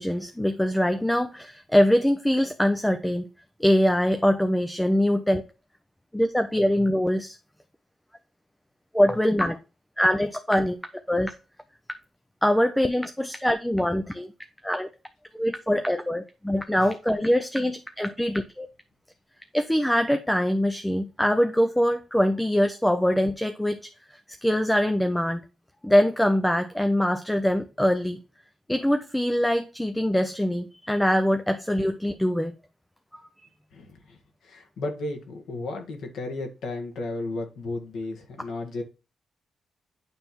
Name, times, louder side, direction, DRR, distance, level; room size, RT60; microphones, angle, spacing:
voice 1, 0.0-3.3 3.6-5.4 6.1-7.4 8.9-9.6 10.0-10.8 11.1-11.3 12.4-14.3 14.6-14.9 15.3-18.7 19.5-23.8 24.4-25.4 25.8-28.2 28.7-32.5 33.4-33.5, equal, 5° left, 0.5 m, -23 dB
voice 2, 33.7-34.2 34.4-38.8, left 2 dB, 85° left, 1.8 m, -34 dB
9.0 x 3.4 x 4.3 m
wide cardioid pair, 145°, 0 cm